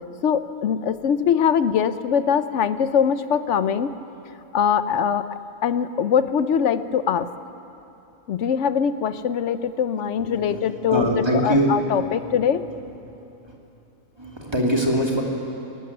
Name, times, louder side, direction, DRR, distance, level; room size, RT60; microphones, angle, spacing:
voice 1, 0.2-3.9 4.5-7.3 8.3-12.7, left 7 dB, 60° left, 13 dB, 0.9 m, -22 dB
voice 2, 10.2-10.6 10.9-11.7 12.0-13.0 13.4-13.6 14.2-15.2, right 1 dB, 20° right, -1 dB, 2.5 m, -24 dB
19.0 x 15.5 x 9.8 m, 3.0 s
omnidirectional pair, 1.5 m